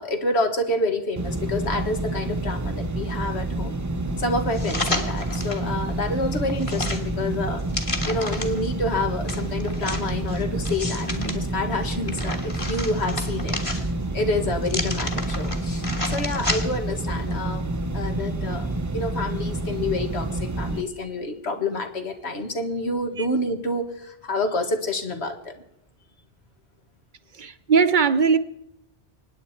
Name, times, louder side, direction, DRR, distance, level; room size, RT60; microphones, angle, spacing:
voice 1, 0.0-3.8 4.2-7.6 8.1-13.5 14.1-25.5, left 2 dB, 80° left, 5 dB, 2.0 m, -28 dB
sound 1, 1.2-20.8, right 2 dB, 20° right, 0.6 m, -28 dB
sound 2, 4.5-5.7 6.1-8.7 9.3-11.4 11.8-14.1 14.6-16.9 17.3-17.4, left 2 dB, 30° left, 1.7 m, -31 dB
voice 2, 27.3-28.4, right 5 dB, 50° right, 12 dB, 0.8 m, -19 dB
25.0 x 9.8 x 4.4 m, 0.84 s
omnidirectional pair, 1.1 m